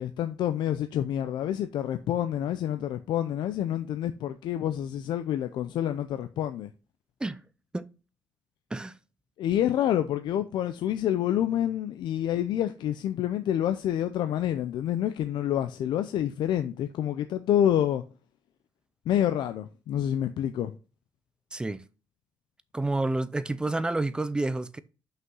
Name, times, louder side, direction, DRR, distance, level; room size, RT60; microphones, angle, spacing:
voice 1, 0.0-6.7 9.4-18.0 19.1-20.7, left 11 dB, 70° left, 0.6 m, -28 dB
voice 2, 21.5-21.8 22.7-24.8, right 2 dB, 10° right, 0.5 m, -29 dB
6.0 x 5.6 x 5.5 m
cardioid pair, 150°, 8 cm